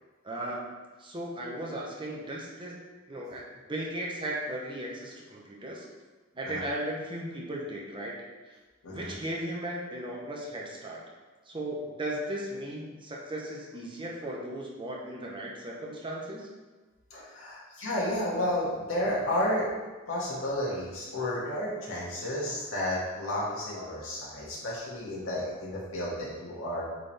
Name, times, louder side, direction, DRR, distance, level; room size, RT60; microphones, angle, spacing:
voice 1, 0.2-2.8 3.1-5.9 6.3-8.2 8.9-11.0 11.5-16.5, right 1 dB, 25° right, -3 dB, 1.1 m, -36 dB
voice 2, 8.8-9.1 17.1-19.7 20.1-26.8, left 1 dB, 90° left, -6 dB, 2.2 m, -32 dB
8.3 x 4.1 x 3.5 m, 1.3 s
head